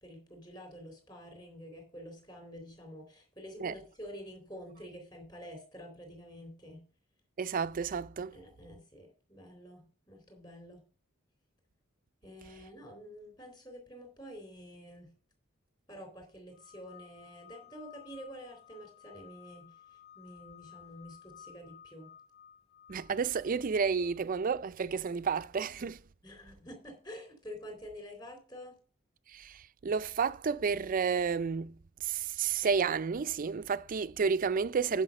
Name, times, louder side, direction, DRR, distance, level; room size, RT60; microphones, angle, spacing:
voice 1, 0.0-6.8 8.3-10.8 12.2-15.1 15.9-22.1 26.2-28.7, equal, 20° left, 3.8 m, -48 dB
voice 2, 7.4-8.4 22.9-26.0 29.3-35.0, right 5 dB, 45° right, 0.4 m, -31 dB
sound 1, 16.5-24.3, left 10 dB, 80° left, 2.0 m, -56 dB
9.9 x 5.8 x 5.4 m
head